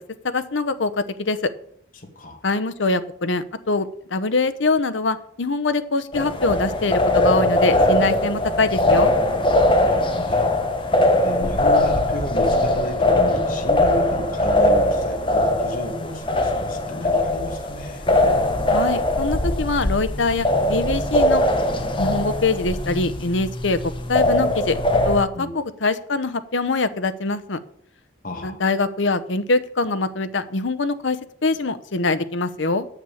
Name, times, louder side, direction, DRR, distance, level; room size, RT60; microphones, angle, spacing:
voice 1, 0.2-1.5 2.4-9.1 18.7-21.4 22.0-23.8 24.1-24.8 25.0-27.6 28.4-32.9, left 3 dB, 90° left, 12 dB, 0.9 m, -23 dB
voice 2, 1.9-2.4 8.2-8.3 9.9-10.5 11.2-18.1 25.3-25.5 28.2-28.6, equal, 45° left, 3 dB, 2.2 m, -33 dB
sound 1, 6.1-25.2, left 1 dB, 25° left, 1.4 m, -20 dB
9.4 x 7.3 x 8.5 m, 0.65 s
head